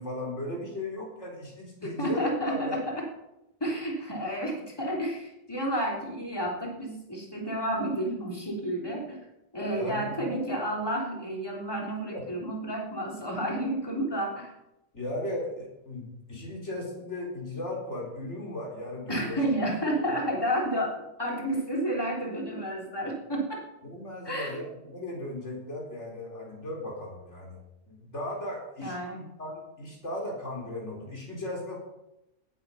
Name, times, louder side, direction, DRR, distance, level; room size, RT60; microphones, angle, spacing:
voice 1, 0.0-2.8 9.7-10.4 12.1-12.2 14.9-19.4 20.1-20.2 23.8-29.0 29.4-31.8, left 1 dB, 80° left, -2 dB, 4.5 m, -36 dB
voice 2, 2.0-3.1 3.6-9.2 9.5-14.5 19.1-23.6 24.3-24.6 28.8-29.3, right 1 dB, 20° left, -1 dB, 3.6 m, -31 dB
18.0 x 9.1 x 5.7 m, 0.90 s
omnidirectional pair, 1.2 m